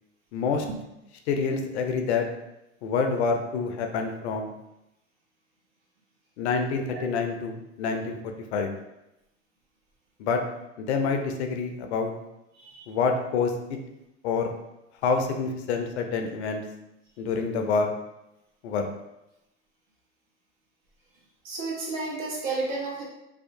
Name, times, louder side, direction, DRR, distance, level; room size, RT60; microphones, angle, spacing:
voice 1, 0.3-0.7 1.3-2.3 2.8-4.5 6.4-8.7 10.2-10.4 10.8-12.1 12.9-13.8 14.2-14.5 15.0-16.6 17.2-17.9 18.6-18.9, left 5 dB, 65° left, 4 dB, 0.5 m, -27 dB
voice 2, 21.4-23.0, right 3 dB, 55° right, -3 dB, 1.0 m, -32 dB
2.7 x 2.2 x 2.5 m, 0.89 s
hypercardioid pair, 85°, 37 cm